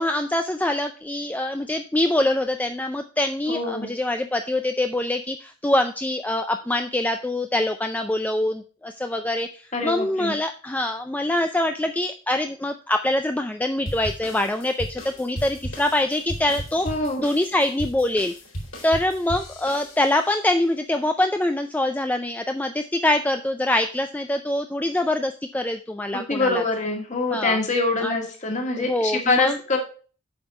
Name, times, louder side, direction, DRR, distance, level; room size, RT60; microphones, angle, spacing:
voice 1, 0.0-16.9 17.2-18.3 18.8-26.6 27.3-27.6 28.0-28.1 28.8-29.6, left 1 dB, 5° left, 6 dB, 0.3 m, -24 dB
voice 2, 3.5-3.9 9.7-10.3 16.8-17.2 26.1-29.8, left 3 dB, 35° left, 2 dB, 1.9 m, -24 dB
sound 1, 13.9-20.3, equal, 65° left, 3.5 m, -36 dB
7.9 x 5.5 x 4.7 m, 0.39 s
head